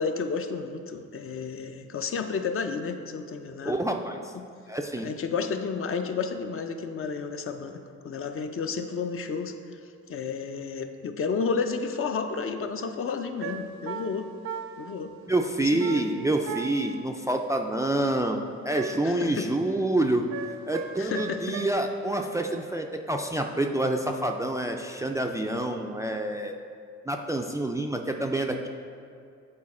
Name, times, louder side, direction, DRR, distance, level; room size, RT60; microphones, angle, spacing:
voice 1, 0.0-3.8 4.3-4.5 5.0-9.5 10.1-14.3 14.8-15.1 15.6-16.1 19.0-19.5 21.0-21.6, left 5 dB, 45° left, 7 dB, 0.5 m, -31 dB
voice 2, 3.6-4.2 4.7-5.1 15.3-20.3 20.7-26.6 27.1-28.7, right 1 dB, 10° right, 3 dB, 0.3 m, -27 dB
sound 1, 13.4-15.0 15.8-17.0 18.8-19.3 20.3-21.7, right 6 dB, 70° right, 0.6 m, -37 dB
8.7 x 4.2 x 4.2 m, 2.4 s
cardioid pair, 90°, 30 cm